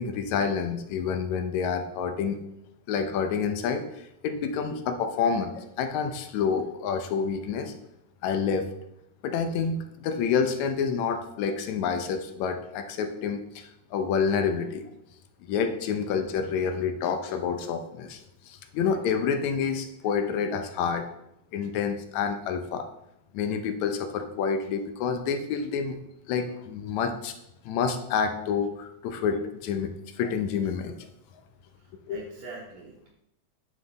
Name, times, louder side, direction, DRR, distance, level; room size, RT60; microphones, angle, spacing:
voice 1, 0.0-2.4 2.9-3.9 4.2-7.7 8.2-8.7 9.2-14.9 15.5-18.2 18.5-21.1 21.5-22.9 23.3-26.0 26.3-27.3 27.7-29.9 30.2-31.1 32.1-32.2, left 6 dB, 75° left, 7 dB, 1.9 m, -28 dB
voice 2, 4.5-4.8 15.9-16.1 31.7-33.1, right 4 dB, 70° right, -2 dB, 2.2 m, -45 dB
9.4 x 6.3 x 3.9 m, 0.84 s
omnidirectional pair, 3.6 m